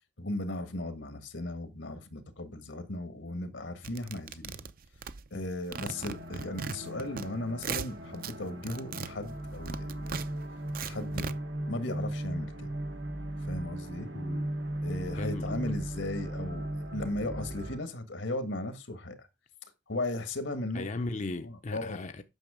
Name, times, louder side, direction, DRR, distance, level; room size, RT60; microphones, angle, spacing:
voice 1, 0.2-4.7 5.3-10.2 10.8-11.3 11.7-12.7 13.5-14.1 14.8-16.6 16.9-19.3 19.9-20.9 21.2-22.0, left 1 dB, 85° left, 1.7 m, -36 dB
sound 1, 3.8-5.5 5.7-7.3 7.5-8.3 8.6-11.3, right 6 dB, 50° right, 0.6 m, -38 dB
sound 2, 5.7-17.8, right 1 dB, 80° right, 1.4 m, -37 dB
voice 2, 14.1-14.5 14.9-15.7 20.7-22.2, left 2 dB, 40° left, 0.6 m, -38 dB
9.1 x 6.3 x 5.0 m
head